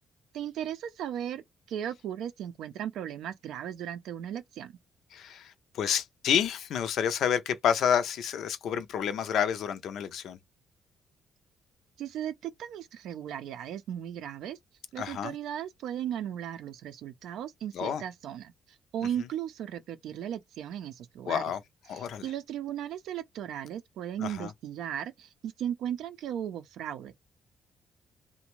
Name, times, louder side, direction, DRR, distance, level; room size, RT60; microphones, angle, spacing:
voice 1, 0.3-1.4 1.7-4.7 12.0-14.6 14.9-18.5 18.9-21.4 21.9-27.2, right 10 dB, 80° right, 0.4 m, -36 dB
voice 2, 5.1-10.4 15.0-15.3 17.7-18.0 21.3-21.6 21.9-22.2 24.2-24.5, left 8 dB, 75° left, 0.4 m, -29 dB
2.6 x 2.1 x 3.0 m
cardioid pair, 90°, 0 cm